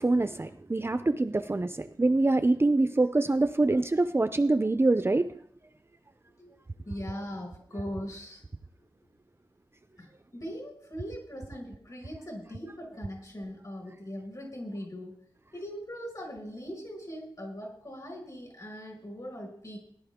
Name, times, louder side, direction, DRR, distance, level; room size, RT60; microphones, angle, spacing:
voice 1, 0.0-5.4, right 2 dB, 25° right, 10 dB, 0.5 m, -25 dB
voice 2, 6.8-8.4 10.0-15.2 15.5-19.8, equal, 40° left, 0 dB, 5.3 m, -40 dB
18.5 x 11.0 x 3.6 m, 0.65 s
wide cardioid pair, 105°, 9 cm